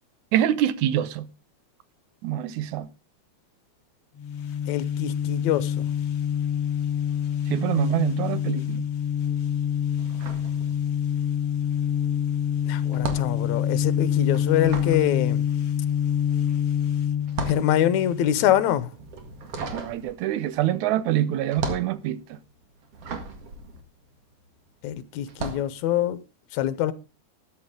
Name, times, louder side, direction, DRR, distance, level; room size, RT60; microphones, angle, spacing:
voice 1, 0.3-1.3 2.2-2.9 7.5-8.9 19.7-22.2, right 12 dB, 80° right, 2.2 m, -25 dB
sound 1, 4.2-18.7, left 9 dB, 60° left, 2.0 m, -26 dB
voice 2, 4.7-5.9 12.6-15.4 17.5-18.9 24.8-26.2 26.5-26.9, left 11 dB, 80° left, 2.2 m, -24 dB
sound 2, 10.0-11.2 11.5-24.7 25.2-25.7, right 3 dB, 55° right, 2.7 m, -36 dB
13.5 x 10.5 x 3.7 m
omnidirectional pair, 3.4 m